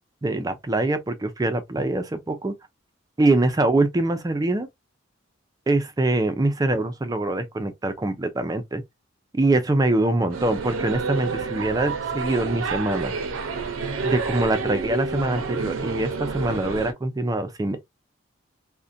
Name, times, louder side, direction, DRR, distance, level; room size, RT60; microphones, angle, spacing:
voice 1, 0.2-2.5 3.2-4.7 5.7-8.8 9.3-13.1 14.0-17.8, right 2 dB, 20° right, 0.3 m, -24 dB
sound 1, 10.3-16.9, right 4 dB, 85° right, 0.5 m, -29 dB
2.4 x 2.1 x 2.5 m
head